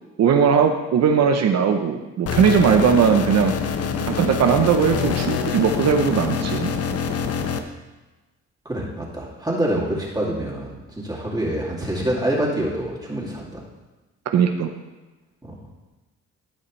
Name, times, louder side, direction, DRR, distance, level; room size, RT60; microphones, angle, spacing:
voice 1, 0.2-3.5 4.1-6.7 14.3-14.7, right 7 dB, 60° right, 5 dB, 0.8 m, -19 dB
sound 1, 2.3-7.6, left 6 dB, 55° left, 0.8 m, -25 dB
voice 2, 8.6-13.6 15.4-15.5, right 1 dB, 15° right, -5 dB, 2.4 m, -26 dB
14.0 x 5.6 x 3.2 m, 1.2 s
cardioid pair, 90°, 30 cm